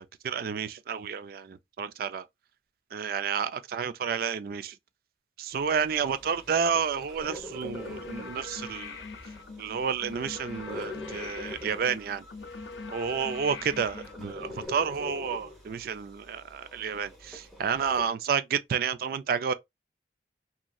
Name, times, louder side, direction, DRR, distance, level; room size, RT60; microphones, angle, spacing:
voice 1, 0.0-2.2 2.9-4.8 5.4-9.0 9.6-12.2 12.9-19.5, right 6 dB, 50° right, 0.3 m, -30 dB
sound 1, 5.5-18.1, left 1 dB, ahead, 0.8 m, -45 dB
sound 2, 7.5-14.7, left 4 dB, 75° left, 0.6 m, -42 dB
2.9 x 2.6 x 2.3 m
head